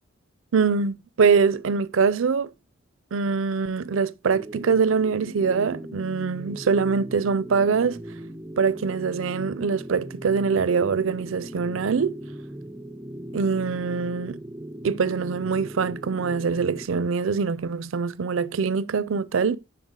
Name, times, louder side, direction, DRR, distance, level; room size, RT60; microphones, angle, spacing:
voice 1, 0.5-2.5 3.1-8.0 8.6-12.2 13.3-14.4 14.8-19.6, right 5 dB, 80° right, 0.5 m, -23 dB
sound 1, 4.3-16.9, right 1 dB, 10° right, 0.4 m, -39 dB
8.1 x 5.6 x 3.7 m
head